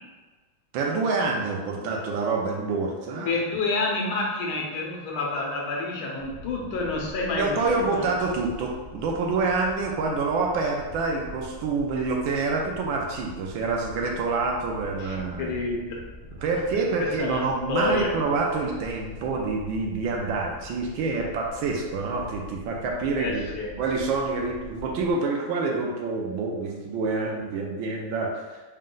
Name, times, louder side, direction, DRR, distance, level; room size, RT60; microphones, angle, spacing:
voice 1, 0.7-3.4 7.4-15.5 16.4-23.4 23.8-28.6, right 3 dB, 75° right, 0 dB, 1.3 m, -27 dB
voice 2, 3.2-7.6 7.9-8.0 15.0-16.0 17.0-17.4 17.7-18.1 23.2-23.7, left 3 dB, 80° left, -1 dB, 1.6 m, -28 dB
sound 1, 6.2-25.1, left 1 dB, 40° right, 1.3 m, -44 dB
4.1 x 2.2 x 3.7 m, 1.3 s
omnidirectional pair, 2.2 m